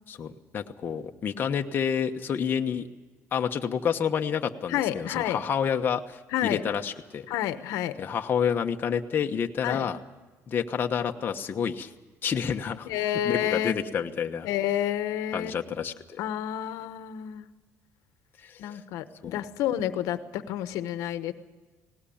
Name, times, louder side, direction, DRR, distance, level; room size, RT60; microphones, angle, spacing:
voice 1, 0.1-2.9 3.3-7.2 8.0-10.0 10.5-11.9 12.2-12.9 13.2-14.5 15.3-16.2 18.4-18.8 19.2-19.4, left 7 dB, 35° left, 4 dB, 1.1 m, -29 dB
voice 2, 4.7-5.4 6.3-6.6 7.3-7.9 9.6-9.9 12.8-13.9 14.4-15.8 16.2-17.5 18.6-21.3, left 11 dB, 80° left, 11 dB, 1.1 m, -29 dB
18.5 x 18.5 x 8.7 m, 1.3 s
cardioid pair, 135°, 6 cm